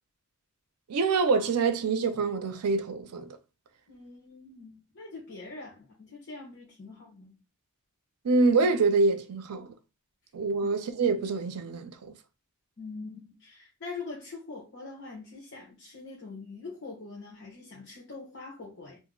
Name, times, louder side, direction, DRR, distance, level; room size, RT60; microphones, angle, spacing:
voice 1, 0.9-3.3 8.2-9.7 10.3-12.1, right 4 dB, 85° right, 0.5 m, -25 dB
voice 2, 3.9-7.4 12.8-19.0, left 3 dB, 55° left, 0.9 m, -43 dB
2.6 x 2.0 x 3.6 m
head